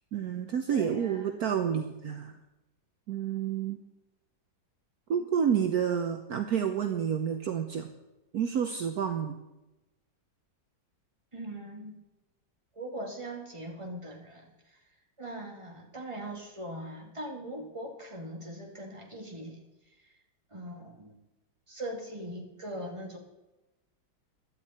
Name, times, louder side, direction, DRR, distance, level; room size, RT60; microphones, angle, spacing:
voice 1, 0.1-2.4 3.1-3.8 5.1-7.9 8.3-9.4, right 8 dB, 65° right, 6 dB, 1.3 m, -29 dB
voice 2, 0.7-1.4 11.3-12.0 12.7-14.8 15.2-19.6 19.9-20.1 20.5-21.2 21.7-23.2, right 1 dB, 15° right, 0 dB, 2.3 m, -41 dB
16.5 x 12.0 x 4.3 m, 0.99 s
omnidirectional pair, 1.9 m